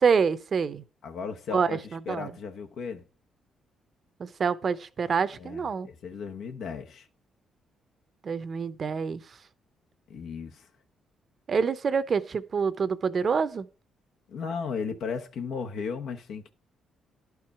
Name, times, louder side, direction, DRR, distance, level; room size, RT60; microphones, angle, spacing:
voice 1, 0.0-0.8 1.5-2.3 4.2-5.9 8.2-9.2 11.5-13.7, right 5 dB, 45° right, 0.7 m, -26 dB
voice 2, 1.0-3.0 5.3-7.1 10.1-10.7 14.3-16.5, left 6 dB, 75° left, 0.9 m, -35 dB
11.0 x 4.7 x 5.9 m
cardioid pair, 90°, 0 cm